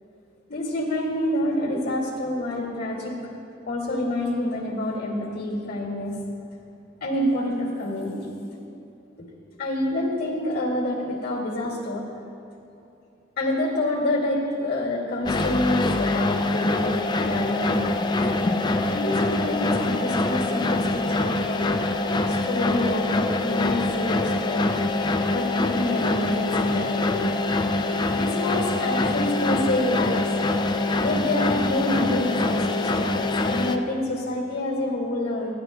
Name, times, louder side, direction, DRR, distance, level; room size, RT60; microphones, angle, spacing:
voice 1, 0.5-3.2 3.7-6.2 7.0-8.3 9.2-9.3 9.6-12.1 13.4-17.0 17.2-18.3 18.9-21.6 22.3-24.7 25.3-27.4 28.1-30.3 31.0-35.5, left 1 dB, 55° left, 0 dB, 2.2 m, -27 dB
sound 1, 15.2-33.8, left 2 dB, 25° left, 0.4 m, -24 dB
19.5 x 12.5 x 2.2 m, 2.7 s
head